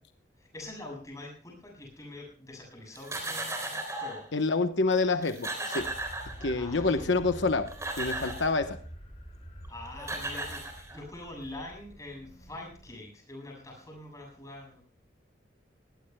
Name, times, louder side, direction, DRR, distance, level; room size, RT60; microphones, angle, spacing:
voice 1, 0.4-4.3 6.5-7.5 9.7-14.8, left 1 dB, 15° left, 0 dB, 7.5 m, -45 dB
sound 1, 2.9-4.3 4.9-5.0 5.2-6.8 7.5-8.6 9.6-9.7 10.0-11.2, right 2 dB, 15° right, 3.8 m, -36 dB
voice 2, 4.3-5.9 6.4-7.7 8.0-8.8, left 3 dB, 80° left, 8 dB, 1.0 m, -27 dB
sound 2, 5.8-13.0, equal, 35° left, 6.0 m, -47 dB
20.5 x 18.5 x 2.2 m, 0.41 s
head